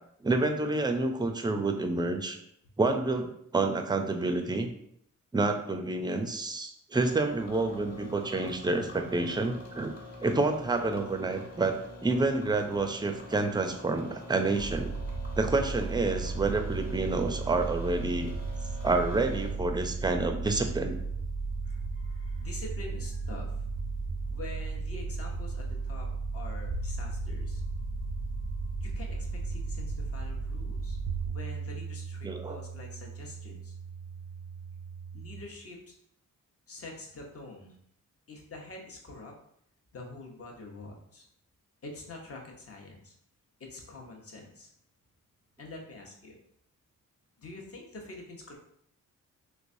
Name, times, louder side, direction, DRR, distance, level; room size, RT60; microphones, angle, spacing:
voice 1, 0.2-2.4 2.8-4.7 5.3-9.9 10.2-14.9 15.4-18.3 18.8-21.0 32.2-32.6, right 3 dB, 15° right, 5 dB, 0.4 m, -28 dB
sound 1, 6.9-19.5, left 1 dB, 30° left, 1.2 m, -46 dB
sound 2, 14.6-31.3, right 3 dB, 75° left, 0.9 m, -35 dB
voice 2, 21.6-23.7 24.3-26.1 26.3-27.6 28.8-31.0 31.2-33.8 35.1-35.9 36.7-37.8 38.3-39.3 39.9-41.2 41.8-43.1 43.6-44.7 45.6-46.4 47.4-48.6, left 2 dB, 45° left, 0 dB, 0.8 m, -46 dB
sound 3, 26.7-35.4, right 3 dB, 70° right, 0.4 m, -41 dB
3.2 x 3.1 x 2.6 m, 0.70 s
cardioid pair, 90°, 32 cm